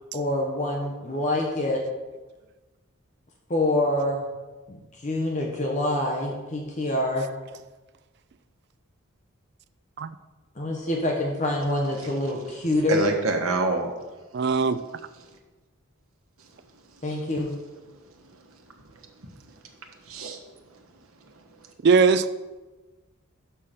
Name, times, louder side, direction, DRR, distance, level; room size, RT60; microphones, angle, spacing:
voice 1, 0.1-1.8 3.5-4.2 4.7-7.4 10.5-13.0 17.0-17.6, left 1 dB, 35° left, 0 dB, 0.9 m, -26 dB
voice 2, 12.9-13.9 16.4-16.6 18.2-18.6 18.8-19.6 20.0-20.8 21.3-21.7, right 3 dB, 90° right, 3 dB, 1.2 m, -29 dB
voice 3, 14.3-14.8 21.8-22.3, right 5 dB, 50° right, 12 dB, 0.4 m, -20 dB
5.7 x 5.6 x 6.6 m, 1.2 s
head